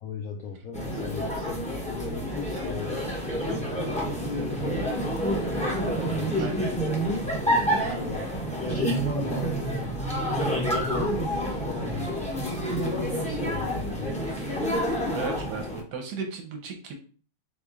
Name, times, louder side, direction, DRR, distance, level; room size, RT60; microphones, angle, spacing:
voice 1, 0.0-5.0 6.0-6.5 6.7-8.2 8.5-12.1 12.4-14.2, left 5 dB, 80° left, 2 dB, 0.7 m, -37 dB
sound 1, 0.7-15.8, equal, 5° left, 0.5 m, -28 dB
voice 2, 15.1-16.9, right 4 dB, 65° right, 4 dB, 1.1 m, -35 dB
4.0 x 3.1 x 3.5 m, 0.41 s
omnidirectional pair, 2.2 m